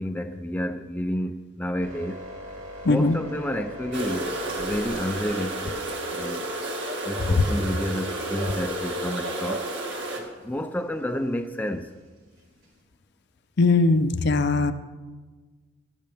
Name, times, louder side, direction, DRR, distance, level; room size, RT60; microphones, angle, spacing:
voice 1, 0.0-2.2 2.9-5.8 6.1-6.5 7.0-11.9, equal, 10° left, 0.5 m, -30 dB
sound 1, 1.8-7.1 8.7-12.8, equal, 80° right, 4.4 m, -42 dB
voice 2, 2.8-3.2 13.6-14.7, left 3 dB, 55° left, 0.6 m, -20 dB
sound 2, 3.9-10.2, right 1 dB, 60° right, 1.9 m, -31 dB
18.0 x 12.0 x 3.5 m
head